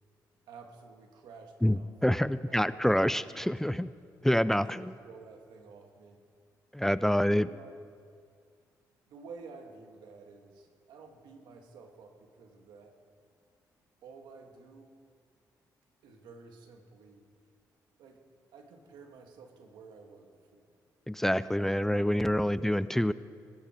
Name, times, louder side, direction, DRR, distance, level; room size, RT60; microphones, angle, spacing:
voice 1, 0.5-3.8 4.6-6.2 7.3-7.7 9.1-13.0 14.0-14.9 16.0-17.3 18.0-18.2 18.5-20.7 21.5-23.1, right 4 dB, 90° right, 4 dB, 1.9 m, -51 dB
voice 2, 1.6-3.9 4.2-5.0 6.7-7.5 21.1-23.1, equal, 5° left, 16 dB, 0.4 m, -27 dB
20.5 x 14.5 x 4.5 m, 2.2 s
cardioid pair, 75°, 7 cm